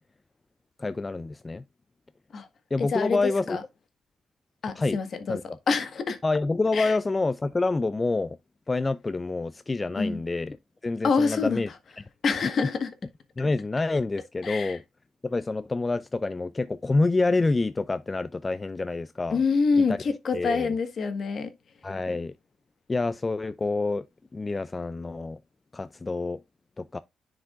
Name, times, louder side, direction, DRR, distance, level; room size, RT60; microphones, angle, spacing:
voice 1, 0.8-1.6 2.7-3.6 4.8-5.0 5.3-5.4 6.2-8.4 8.7-10.6 10.8-11.7 13.4-14.8 15.2-19.4 19.8-20.0 20.3-20.7 21.8-22.3 22.9-24.1 24.3-25.4 25.7-26.4 26.8-27.0, left 3 dB, 20° left, 0.4 m, -27 dB
voice 2, 2.8-3.6 4.6-5.4 5.7-6.2 6.7-7.0 10.0-10.2 11.0-11.6 12.2-12.9 14.4-14.8 19.3-21.5, left 4 dB, 50° left, 1.4 m, -26 dB
10.0 x 4.8 x 2.5 m
cardioid pair, 90°, 0 cm